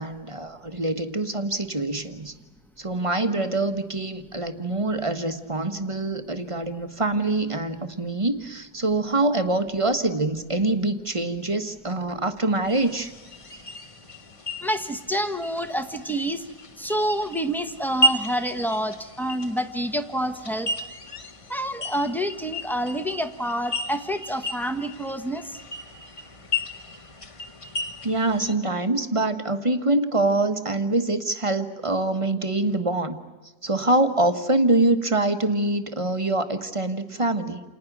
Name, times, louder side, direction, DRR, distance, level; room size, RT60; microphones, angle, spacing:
voice 1, 0.0-2.3 2.8-13.1 28.0-33.2 33.6-37.6, right 2 dB, 20° right, 7 dB, 1.1 m, -25 dB
sound 1, 12.7-28.6, equal, 25° left, 0.7 m, -33 dB
voice 2, 14.6-16.4 16.8-20.7 21.5-25.6, equal, ahead, 7 dB, 1.0 m, -28 dB
29.0 x 28.5 x 6.1 m, 1.2 s
omnidirectional pair, 1.9 m